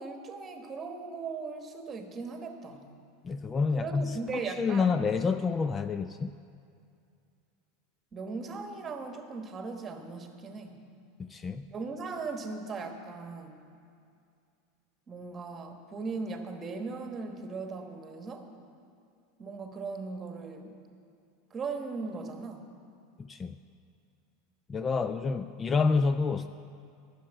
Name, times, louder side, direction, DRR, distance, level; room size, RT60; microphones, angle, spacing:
voice 1, 0.0-2.9 3.7-4.9 8.1-10.8 11.7-13.6 15.1-18.5 19.4-20.7 21.5-22.7, right 4 dB, 25° right, 5 dB, 1.3 m, -38 dB
voice 2, 3.2-6.4 11.3-11.7 23.2-23.6 24.7-26.5, left 4 dB, 25° left, 11 dB, 0.3 m, -28 dB
10.0 x 6.7 x 9.1 m, 2.4 s
supercardioid pair, 110°, 0 cm